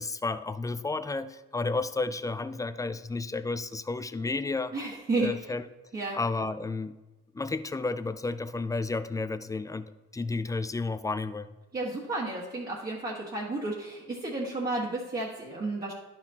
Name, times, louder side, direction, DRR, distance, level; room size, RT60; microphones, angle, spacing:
voice 1, 0.0-4.7 5.2-5.6 6.1-6.9 7.3-11.5, left 3 dB, 10° left, 12 dB, 0.3 m, -32 dB
voice 2, 4.7-5.3 5.9-6.2 11.7-15.9, right 2 dB, 30° right, -7 dB, 1.5 m, -32 dB
10.5 x 5.9 x 2.9 m, 1.1 s
cardioid pair, 90°, 30 cm